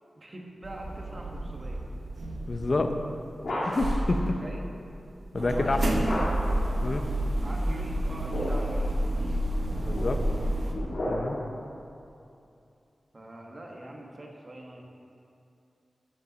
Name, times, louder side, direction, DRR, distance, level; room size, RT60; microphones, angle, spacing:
voice 1, 0.2-1.8 4.4-4.7 5.4-6.3 6.8-9.4 10.2-10.5 13.1-14.9, right 1 dB, 40° right, 0 dB, 1.4 m, -43 dB
sound 1, 0.6-3.4 3.7-10.7, right 1 dB, 65° right, 1.0 m, -30 dB
voice 2, 2.5-2.9 3.6-4.4 5.3-5.8 6.8-7.0 9.7-10.2 11.1-11.4, left 3 dB, 50° left, 6 dB, 0.6 m, -28 dB
sound 2, 3.3-4.1 6.0-6.7 8.0-8.8 9.6-11.6, left 1 dB, 80° left, 1.9 m, -34 dB
13.0 x 5.5 x 4.1 m, 2.6 s
wide cardioid pair, 75°, 0 cm